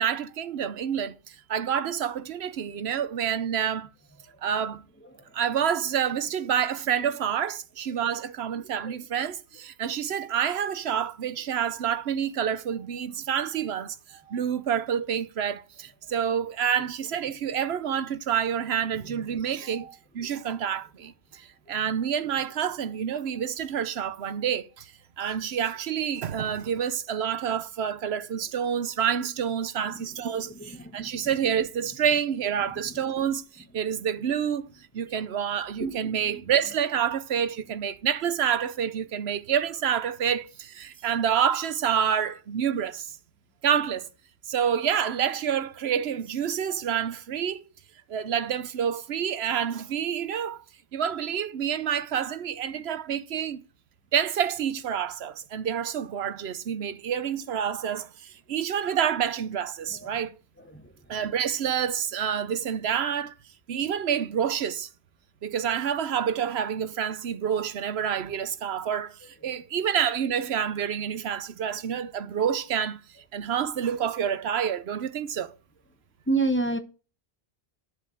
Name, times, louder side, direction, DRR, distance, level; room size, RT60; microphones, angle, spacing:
voice 1, 0.0-3.9 4.4-4.8 5.3-34.7 34.9-43.2 43.6-44.1 44.5-47.7 48.1-50.6 50.9-53.6 54.1-60.4 61.1-63.3 63.7-64.9 65.4-73.0 73.3-75.5, right 8 dB, 85° right, 1.0 m, -28 dB
voice 2, 29.9-31.5 32.9-33.0 35.8-36.7 59.9-60.1 60.7-60.8 76.3-76.8, right 3 dB, 10° left, 0.9 m, -31 dB
10.5 x 4.9 x 6.4 m
omnidirectional pair, 1.1 m